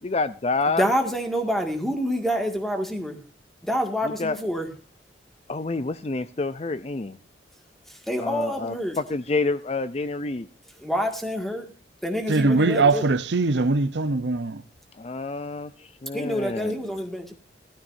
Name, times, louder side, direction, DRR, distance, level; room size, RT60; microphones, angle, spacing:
voice 1, 0.0-0.9 4.0-4.4 5.5-7.2 8.2-10.5 15.0-16.8, left 3 dB, 35° left, 0.5 m, -28 dB
voice 2, 0.7-3.2 3.6-4.7 7.9-9.0 10.8-11.7 12.0-13.1 16.1-17.3, equal, ahead, 2.0 m, -27 dB
voice 3, 12.3-14.6, right 3 dB, 70° right, 0.8 m, -21 dB
16.0 x 13.0 x 2.7 m
head